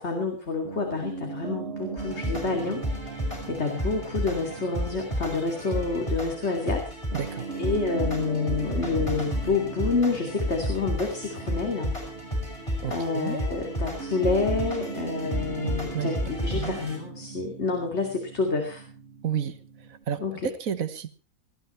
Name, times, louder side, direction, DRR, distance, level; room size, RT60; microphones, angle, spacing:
voice 1, 0.0-6.9 7.6-11.9 12.8-18.8 20.2-20.5, left 4 dB, 50° left, 3 dB, 2.9 m, -28 dB
Piano, 0.6-20.0, right 5 dB, 50° right, 2.0 m, -39 dB
sound 1, 2.0-17.0, equal, 20° left, 6.1 m, -32 dB
voice 2, 7.1-7.5 12.8-13.4 15.6-16.2 16.5-16.8 19.2-19.5 20.1-21.1, right 8 dB, 70° right, 12 dB, 1.6 m, -31 dB
19.5 x 13.5 x 4.4 m, 0.35 s
omnidirectional pair, 1.5 m